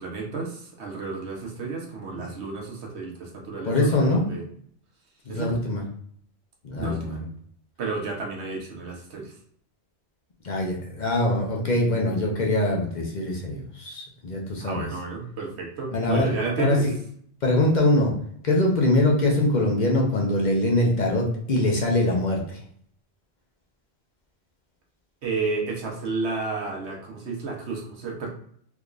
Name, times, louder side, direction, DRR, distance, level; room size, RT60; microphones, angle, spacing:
voice 1, 0.0-4.4 5.3-5.5 6.8-7.2 7.8-9.3 14.6-16.9 25.2-28.3, right 4 dB, 80° right, 0 dB, 1.2 m, -31 dB
voice 2, 3.6-4.3 5.3-5.8 6.6-7.3 10.4-14.9 15.9-16.8 17.4-18.1 18.4-22.6, left 1 dB, 50° left, -1 dB, 0.7 m, -23 dB
3.6 x 2.9 x 2.4 m, 0.62 s
omnidirectional pair, 1.1 m